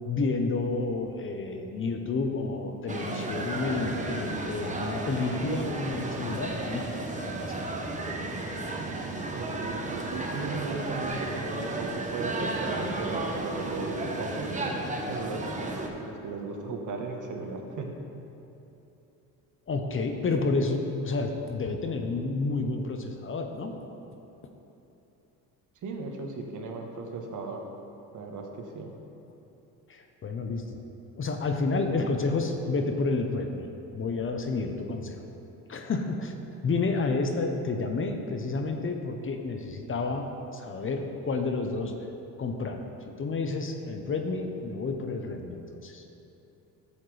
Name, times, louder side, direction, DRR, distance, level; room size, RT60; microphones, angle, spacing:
voice 1, 0.0-7.7 19.7-23.7 29.9-30.8 31.2-33.7 33.9-35.2 35.7-36.3 36.6-41.9 42.4-42.9 43.2-46.0, left 3 dB, 35° left, 5 dB, 0.8 m, -30 dB
sound 1, 2.9-15.9, right 2 dB, 20° right, 1.0 m, -33 dB
voice 2, 9.3-17.9 25.8-27.6 28.1-28.9, right 3 dB, 55° right, 2 dB, 1.3 m, -37 dB
11.0 x 7.2 x 3.3 m, 2.9 s
supercardioid pair, 90°, 38 cm